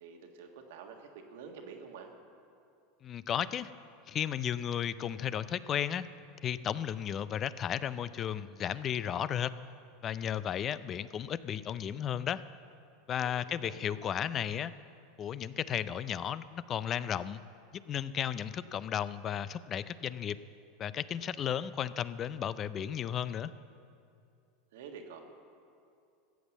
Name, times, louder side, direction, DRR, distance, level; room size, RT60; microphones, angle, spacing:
voice 1, 0.0-2.1 13.2-14.0 24.7-25.2, right 6 dB, 75° right, 3 dB, 1.6 m, -48 dB
voice 2, 3.0-3.7 4.1-6.1 6.4-9.5 10.0-12.4 13.1-14.7 15.2-17.4 17.9-20.4 20.8-23.5, left 9 dB, 35° left, 16 dB, 0.4 m, -34 dB
14.5 x 8.2 x 7.1 m, 2.5 s
hypercardioid pair, 105°, 0 cm